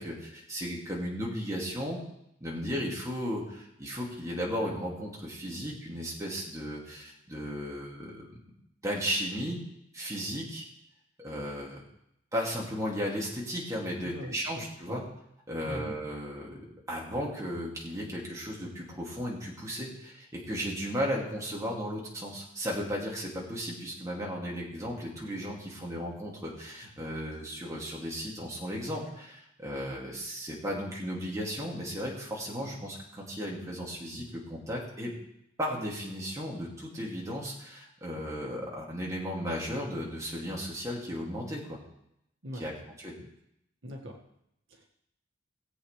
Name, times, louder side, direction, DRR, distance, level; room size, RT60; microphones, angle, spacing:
voice 1, 0.0-2.0 2.4-8.4 8.8-9.6 9.9-10.7 11.2-11.8 12.3-15.0 15.5-35.2 35.6-41.8 42.5-43.2, equal, 15° right, -4 dB, 2.5 m, -35 dB
voice 2, 14.0-14.4 14.9-15.0 15.7-15.9 42.4-42.6 43.2-43.3 43.8-44.2 44.7-44.9, equal, 75° right, 0 dB, 2.0 m, -41 dB
18.5 x 8.3 x 3.4 m, 0.79 s
head